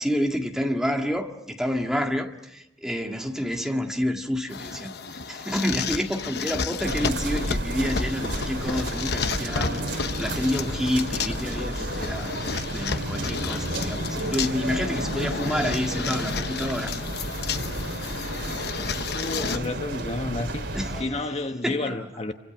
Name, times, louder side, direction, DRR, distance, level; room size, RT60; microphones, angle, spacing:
voice 1, 0.0-17.0 18.4-18.7 19.4-19.8 20.7-21.3 21.6-22.0, equal, 5° right, 1.9 m, -29 dB
sound 1, 4.5-19.6, left 5 dB, 60° left, 1.0 m, -32 dB
sound 2, 6.8-21.0, right 1 dB, 75° right, 4.1 m, -32 dB
voice 2, 19.1-22.3, left 2 dB, 35° left, 1.2 m, -31 dB
29.0 x 25.0 x 6.0 m
head